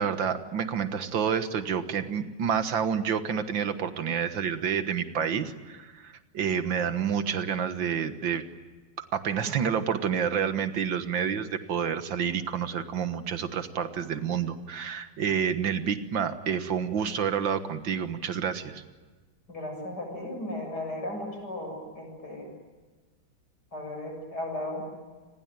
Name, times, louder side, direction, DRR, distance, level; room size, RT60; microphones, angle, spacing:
voice 1, 0.0-8.4 9.1-18.8, right 7 dB, 70° right, 10 dB, 2.1 m, -29 dB
voice 2, 19.5-22.5 23.7-24.8, left 1 dB, 50° left, 2 dB, 7.9 m, -35 dB
29.0 x 21.0 x 9.1 m, 1.4 s
omnidirectional pair, 2.2 m